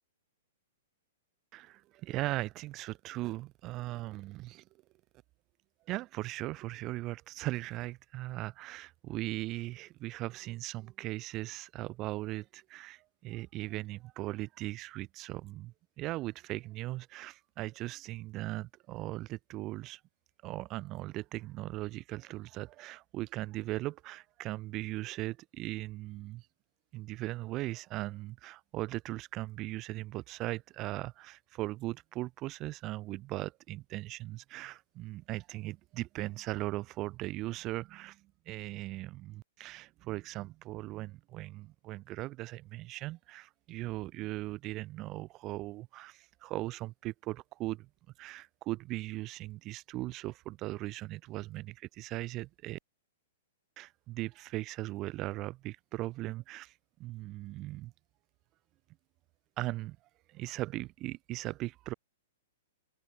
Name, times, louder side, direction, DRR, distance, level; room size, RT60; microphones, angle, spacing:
voice 1, 1.5-4.6 5.9-20.0 20.4-26.5 26.9-47.9 48.2-52.8 53.8-56.7 57.0-57.9 59.6-60.0 60.3-61.9, right 18 dB, 30° right, 6.7 m, -39 dB
open air
figure-of-eight pair, 110°, 0 cm